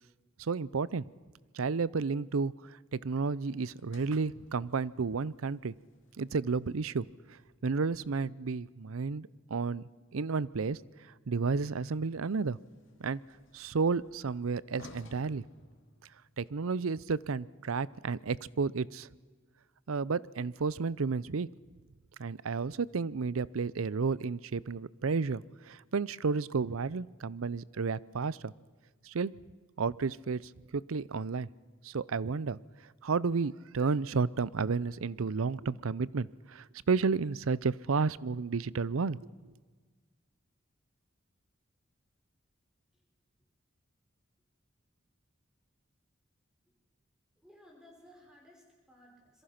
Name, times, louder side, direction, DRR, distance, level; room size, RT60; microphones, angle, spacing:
voice 1, 0.4-1.0 1.5-2.5 2.9-5.7 6.2-7.1 7.6-9.8 10.1-10.8 11.3-12.6 13.0-13.2 13.5-15.4 16.4-19.1 19.9-21.5 22.2-28.5 29.1-29.3 29.8-30.4 30.7-31.5 31.8-32.6 33.0-39.2, right 4 dB, 85° right, 21 dB, 0.6 m, -32 dB
Sliding door, 3.8-8.0 11.5-16.5, left 1 dB, 65° left, 2.6 m, -58 dB
voice 2, 47.4-49.4, equal, 5° right, -1 dB, 5.2 m, -58 dB
26.0 x 23.0 x 5.8 m, 1.4 s
head